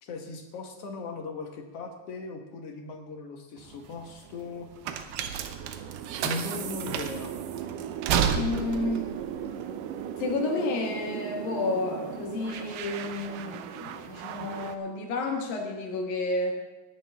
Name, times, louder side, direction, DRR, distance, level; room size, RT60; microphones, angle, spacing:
voice 1, 0.0-4.7 6.2-7.3, left 3 dB, 55° left, 4 dB, 1.8 m, -38 dB
sound 1, 3.6-10.4, right 8 dB, 90° right, 2.9 m, -31 dB
sound 2, 5.4-14.8, right 9 dB, 75° right, 2.2 m, -38 dB
voice 2, 8.3-9.1 10.2-16.6, left 2 dB, 75° left, 2 dB, 3.2 m, -31 dB
19.5 x 11.0 x 3.5 m, 1.1 s
omnidirectional pair, 4.3 m